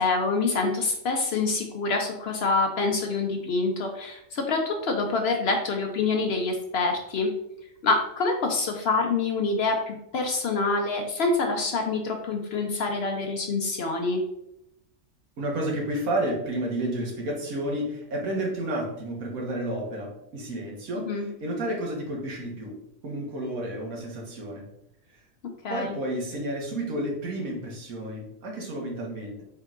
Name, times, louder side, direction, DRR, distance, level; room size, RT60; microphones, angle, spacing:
voice 1, 0.0-7.3 7.8-14.2 21.0-21.3 25.6-26.0, left 3 dB, 60° left, 3 dB, 0.7 m, -26 dB
voice 2, 15.4-22.8 23.0-24.7 25.7-29.4, right 1 dB, 85° right, -1 dB, 1.5 m, -31 dB
4.4 x 3.7 x 2.4 m, 0.82 s
omnidirectional pair, 1.4 m